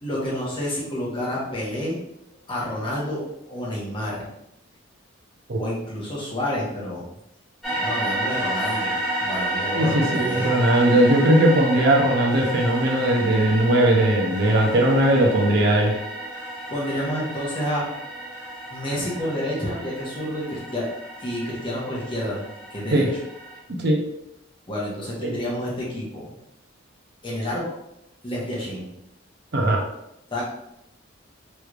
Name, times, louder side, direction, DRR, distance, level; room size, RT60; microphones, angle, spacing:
voice 1, 0.0-2.0 2.5-4.3 5.6-7.0 7.7-10.5 16.7-17.9 18.7-20.9 21.2-23.1 24.7-26.4 27.2-27.7 28.2-28.9 30.3-30.4, left 1 dB, 25° left, -6 dB, 1.0 m, -29 dB
sound 1, 7.6-23.6, right 1 dB, ahead, 1.1 m, -31 dB
voice 2, 9.7-15.9 22.9-23.1 23.8-24.0 25.2-25.3 29.5-29.8, right 1 dB, 55° right, 0 dB, 0.6 m, -19 dB
3.2 x 3.1 x 2.4 m, 0.83 s
head